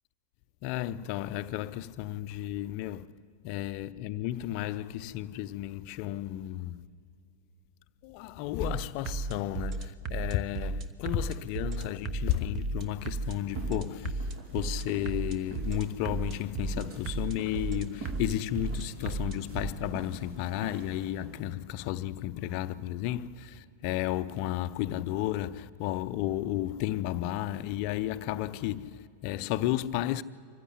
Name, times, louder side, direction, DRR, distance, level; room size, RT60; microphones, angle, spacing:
voice 1, 0.6-3.1 3.4-6.9 8.0-30.2, left 13 dB, 45° left, 0.5 m, -33 dB
sound 1, 8.6-19.7, right 3 dB, 30° right, 1.1 m, -36 dB
sound 2, 13.0-21.5, right 4 dB, 55° right, 3.1 m, -48 dB
24.0 x 15.5 x 8.3 m
figure-of-eight pair, 90°, 0 cm